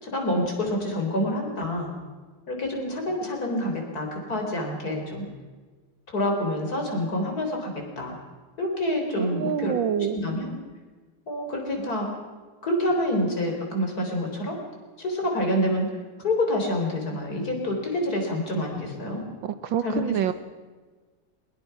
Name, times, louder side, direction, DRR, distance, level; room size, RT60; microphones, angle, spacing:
voice 1, 0.0-1.9 2.5-5.3 6.1-8.2 8.6-10.6 11.3-12.1 12.6-14.6 15.0-15.9 16.2-19.2 19.8-20.0, left 1 dB, 45° left, 2 dB, 4.3 m, -27 dB
voice 2, 9.2-10.2 19.4-20.3, right 9 dB, 70° right, 12 dB, 1.5 m, -26 dB
22.0 x 21.0 x 5.7 m, 1.4 s
omnidirectional pair, 2.3 m